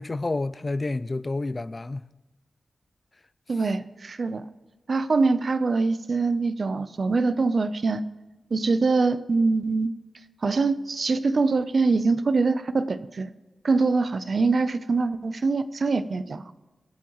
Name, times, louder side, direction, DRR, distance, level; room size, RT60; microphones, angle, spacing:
voice 1, 0.0-2.1, left 2 dB, 30° left, 0.3 m, -29 dB
voice 2, 3.5-4.5 4.9-8.0 8.5-9.9 10.4-13.3 13.6-16.5, right 3 dB, 50° right, 0.6 m, -24 dB
24.0 x 8.4 x 3.1 m
wide cardioid pair, 135°, 0 cm